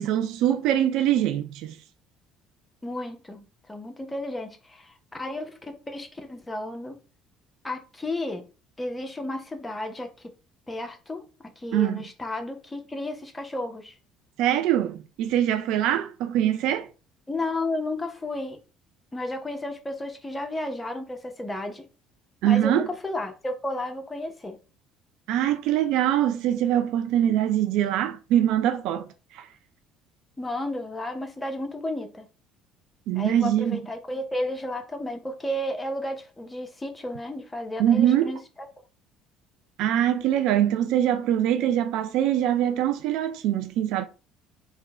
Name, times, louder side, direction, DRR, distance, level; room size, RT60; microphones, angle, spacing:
voice 1, 0.0-1.8 11.7-12.0 14.4-16.9 22.4-22.9 25.3-29.1 29.3-29.5 33.1-33.8 37.8-38.3 39.8-44.1, right 11 dB, 65° right, 0.4 m, -23 dB
voice 2, 2.8-7.0 7.6-8.5 8.8-10.1 10.7-11.3 11.6-14.0 17.3-18.6 19.1-21.8 22.4-24.6 30.4-32.3 33.1-38.7, left 1 dB, 20° left, 0.9 m, -32 dB
3.6 x 2.2 x 4.2 m
hypercardioid pair, 55°, 0 cm